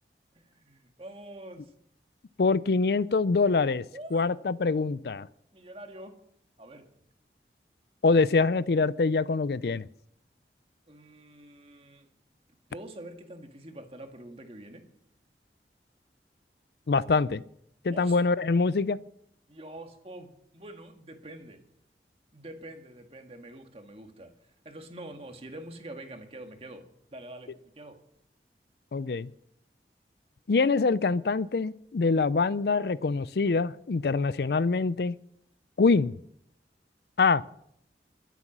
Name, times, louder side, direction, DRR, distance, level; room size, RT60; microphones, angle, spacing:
voice 1, 0.4-1.7 3.9-4.2 5.5-6.1 6.6-6.9 10.9-12.1 12.7-14.8 17.9-18.2 19.5-21.6 22.3-24.3 24.7-26.8 27.1-28.0, right 1 dB, 35° right, 5 dB, 1.9 m, -45 dB
voice 2, 2.4-3.8 4.1-5.3 8.0-9.9 16.9-17.4 17.8-19.0 28.9-29.3 30.5-35.1 35.8-36.1 37.2-37.4, left 4 dB, 65° left, 18 dB, 0.5 m, -24 dB
22.5 x 8.2 x 6.1 m, 0.72 s
head